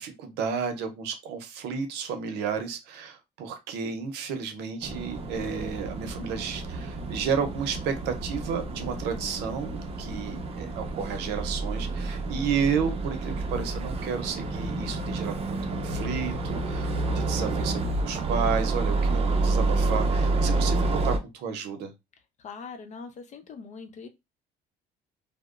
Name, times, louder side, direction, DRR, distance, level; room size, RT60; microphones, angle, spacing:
voice 1, 0.0-21.9, right 6 dB, 90° right, 0.6 m, -32 dB
sound 1, 4.8-21.2, right 3 dB, 35° right, 0.5 m, -29 dB
voice 2, 22.4-24.1, left 5 dB, 45° left, 0.6 m, -42 dB
2.8 x 2.0 x 2.4 m
cardioid pair, 110°, 17 cm